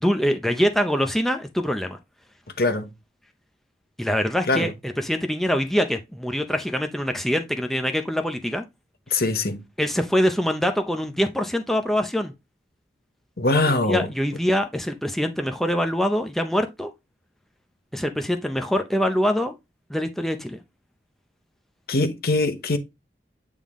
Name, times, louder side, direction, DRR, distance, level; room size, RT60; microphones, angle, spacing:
voice 1, 0.0-2.0 4.0-8.6 9.8-12.3 13.8-16.9 17.9-19.5 19.9-20.6, equal, ahead, 0.6 m, -24 dB
voice 2, 2.6-2.9 4.5-4.7 9.1-9.6 13.4-14.1 21.9-22.8, left 2 dB, 60° left, 1.1 m, -22 dB
8.7 x 3.7 x 3.6 m
head